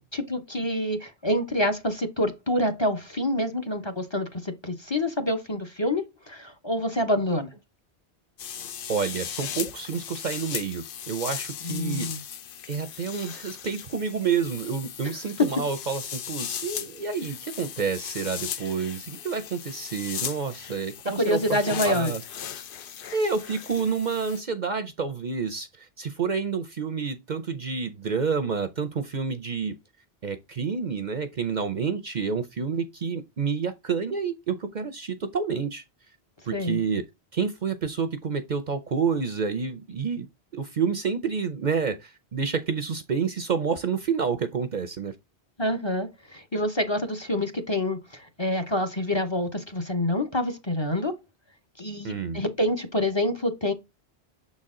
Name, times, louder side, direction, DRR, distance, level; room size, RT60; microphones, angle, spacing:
voice 1, 0.1-7.5 11.6-12.2 15.4-15.5 21.2-22.1 36.5-36.8 45.6-51.1 51.8-53.7, left 1 dB, 25° left, 0.8 m, -27 dB
sound 1, 8.4-24.4, left 9 dB, 60° left, 0.7 m, -37 dB
voice 2, 8.9-12.1 12.7-22.2 23.1-29.8 30.2-35.8 36.5-37.0 37.3-40.3 40.5-45.1 52.0-52.4, right 5 dB, 50° right, 0.7 m, -29 dB
7.0 x 4.2 x 3.7 m
omnidirectional pair, 1.1 m